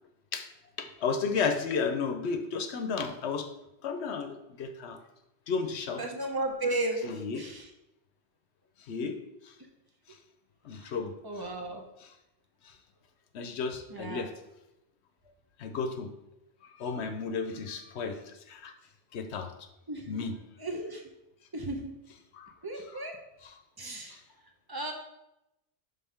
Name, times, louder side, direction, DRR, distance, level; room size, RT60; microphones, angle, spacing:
voice 1, 0.8-3.5 3.8-5.0 5.5-6.0 7.0-7.5 8.8-9.2 9.4-9.5 10.1-10.2 10.6-11.5 12.0-12.1 12.6-12.7 13.3-14.3 15.6-16.1 16.6-18.7 19.1-19.5 20.1-20.4 22.3-23.0 23.4-23.5 24.1-24.2, left 5 dB, 75° left, 7 dB, 0.9 m, -33 dB
voice 2, 6.0-7.1 7.3-7.7 10.8-10.9 11.2-11.8 13.9-14.3 19.9-20.3 20.6-21.0 21.5-21.9 22.6-23.2 23.8-24.2 24.7-24.9, right 2 dB, 20° right, 2 dB, 0.8 m, -34 dB
5.5 x 3.8 x 5.7 m, 0.89 s
omnidirectional pair, 1.1 m